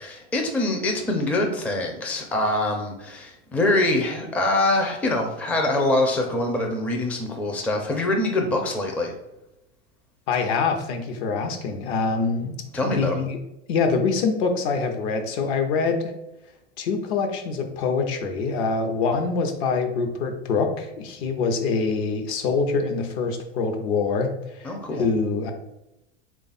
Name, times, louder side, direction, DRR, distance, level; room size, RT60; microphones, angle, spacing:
voice 1, 0.1-9.1 12.7-13.2 24.6-25.1, left 2 dB, 5° left, 2 dB, 0.4 m, -24 dB
voice 2, 10.3-12.6 12.8-13.4 13.7-16.1 16.8-24.3 24.5-25.5, left 4 dB, 65° left, 5 dB, 0.8 m, -25 dB
3.3 x 2.4 x 4.0 m, 0.90 s
hypercardioid pair, 100°, 35 cm